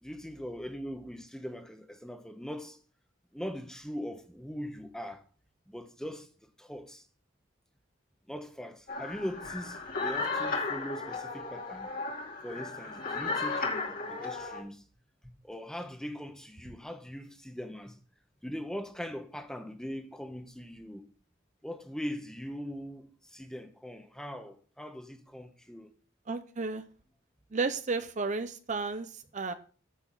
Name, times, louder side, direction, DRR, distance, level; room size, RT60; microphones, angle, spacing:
voice 1, 0.0-2.8 3.3-5.2 5.7-6.3 6.6-7.0 8.3-11.9 12.4-14.8 15.4-18.0 18.4-21.1 21.6-25.9, equal, 5° left, 1.1 m, -41 dB
sound 1, 8.9-14.6, left 3 dB, 50° left, 2.4 m, -35 dB
voice 2, 26.3-26.8 27.5-29.5, right 4 dB, 40° right, 0.7 m, -33 dB
10.0 x 8.0 x 3.9 m
head